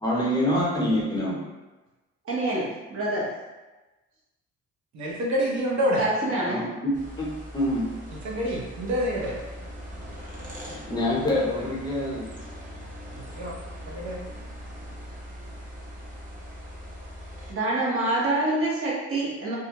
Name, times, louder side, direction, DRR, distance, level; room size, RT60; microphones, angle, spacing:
voice 1, 0.0-1.5 6.4-7.9 10.8-12.3, left 1 dB, 15° left, -5 dB, 0.8 m, -26 dB
voice 2, 2.2-3.3 6.0-6.7 17.5-19.6, right 2 dB, 45° right, -6 dB, 1.0 m, -26 dB
voice 3, 4.9-6.1 8.2-9.4 13.1-13.6 13.9-14.2, equal, 65° right, -3 dB, 0.8 m, -27 dB
sound 1, 6.9-17.5, equal, 25° right, 0.8 m, -41 dB
2.4 x 2.1 x 2.8 m, 1.1 s
cardioid pair, 90°, 30 cm